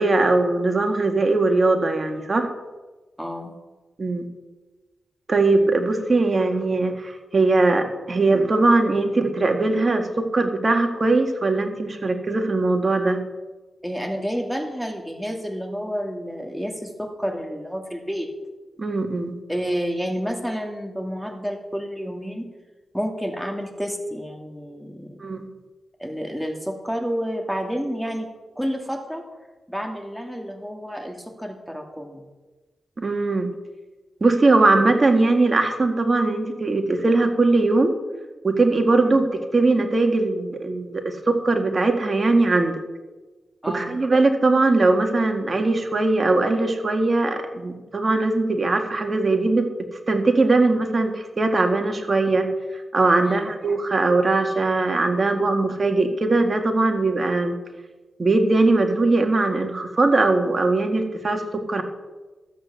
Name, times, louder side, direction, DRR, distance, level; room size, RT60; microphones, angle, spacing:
voice 1, 0.0-2.5 4.0-4.3 5.3-13.2 18.8-19.3 25.2-25.5 33.0-33.5 34.2-37.9 38.4-39.2 39.5-42.8 43.7-49.7 50.1-52.5 52.9-57.6 58.2-61.4 61.7-61.8, right 3 dB, 45° right, 4 dB, 2.0 m, -20 dB
voice 2, 3.2-3.5 13.8-18.3 19.5-22.5 22.9-25.3 26.0-28.3 28.6-29.2 29.7-32.2 43.6-44.0 53.2-53.4, equal, ahead, 2 dB, 2.6 m, -30 dB
13.0 x 8.2 x 6.9 m, 1.2 s
cardioid pair, 60°, 0 cm